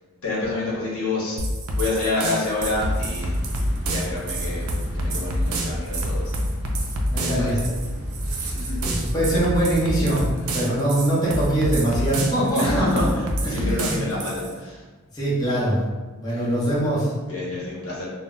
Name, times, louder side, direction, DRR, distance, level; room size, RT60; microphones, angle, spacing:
voice 1, 0.2-1.4 1.7-3.4 3.8-4.7 4.9-6.4 7.2-7.7 8.2-8.8 10.3-10.6 12.4-14.8 16.3-16.4 17.3-18.1, left 2 dB, 80° left, -5 dB, 0.8 m, -28 dB
sound 1, 1.4-14.5, right 1 dB, 85° right, 0.4 m, -28 dB
sound 2, 2.6-9.8, equal, 50° right, 1.0 m, -31 dB
voice 2, 7.1-7.6 8.8-13.0 13.4-14.0 15.1-15.8 16.2-17.1, right 1 dB, 20° left, -8 dB, 0.7 m, -23 dB
2.1 x 2.0 x 3.6 m, 1.3 s
head